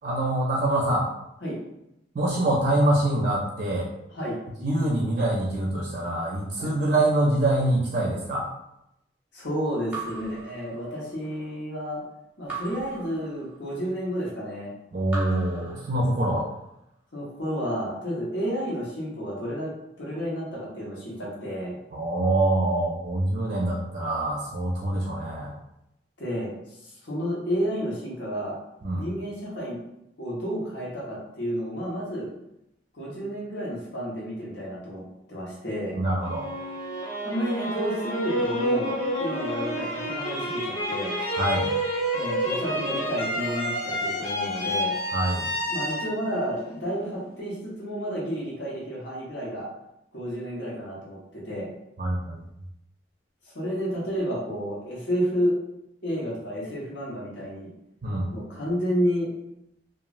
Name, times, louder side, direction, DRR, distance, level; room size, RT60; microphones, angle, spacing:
voice 1, 0.0-1.1 2.1-3.9 4.6-8.5 14.9-16.5 21.9-25.5 28.8-29.1 35.9-36.5 41.4-41.7 45.1-45.5 52.0-52.4 58.0-58.3, right 1 dB, 45° right, -2 dB, 0.4 m, -25 dB
voice 2, 9.3-12.0 12.4-14.7 17.1-19.7 20.0-21.8 26.2-28.5 29.0-29.8 30.2-32.3 32.9-35.0 35.3-36.0 37.2-41.1 42.1-44.9 45.7-49.7 50.1-51.7 53.5-55.6 56.0-57.7 58.3-59.3, equal, 85° left, -5 dB, 1.1 m, -31 dB
Raindrop / Drip, 9.9-11.3 12.5-13.9 15.1-16.5, right 3 dB, 10° right, 0.7 m, -39 dB
sound 1, 36.2-47.3, equal, 35° left, 0.6 m, -29 dB
3.0 x 2.4 x 2.4 m, 0.85 s
head